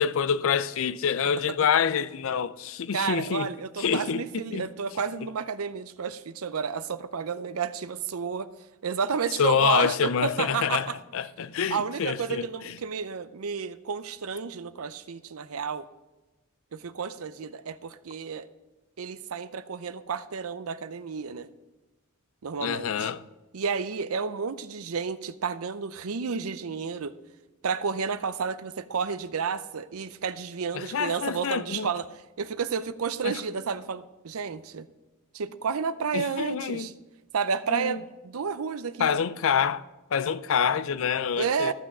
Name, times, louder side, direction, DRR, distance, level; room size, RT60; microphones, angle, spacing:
voice 1, 0.0-3.5 3.8-4.2 4.5-4.7 9.4-12.7 22.6-23.2 30.7-31.9 33.2-33.4 36.1-36.9 37.7-38.0 39.0-39.8 40.1-41.7, left 7 dB, 65° left, 0.4 m, -26 dB
voice 2, 2.9-8.5 8.8-11.0 11.7-15.9 16.7-18.5 19.0-21.5 22.4-23.1 23.5-27.1 27.6-32.1 32.4-34.9 35.3-36.9 37.3-39.1 41.4-41.7, right 6 dB, 75° right, 0.6 m, -31 dB
14.0 x 6.2 x 5.4 m
head